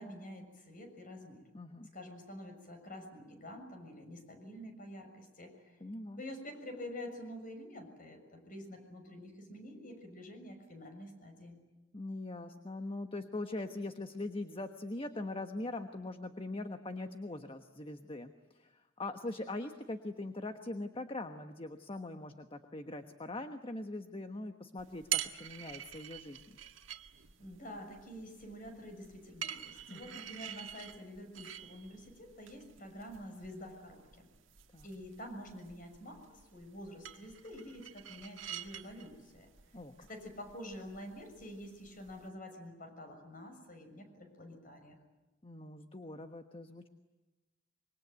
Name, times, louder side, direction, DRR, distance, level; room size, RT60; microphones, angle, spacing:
voice 1, 0.0-1.4 1.9-5.8 6.2-11.6 27.4-34.3 34.8-39.5 40.1-45.0, left 1 dB, 45° left, 5 dB, 6.6 m, -48 dB
voice 2, 1.5-1.9 5.8-6.2 11.9-26.4 29.9-30.0 34.7-34.9 39.7-40.1 45.4-46.9, left 2 dB, 30° left, 7 dB, 1.2 m, -42 dB
sound 1, 24.8-42.3, right 10 dB, 85° right, 1.7 m, -46 dB
26.0 x 23.5 x 9.3 m, 1.1 s
head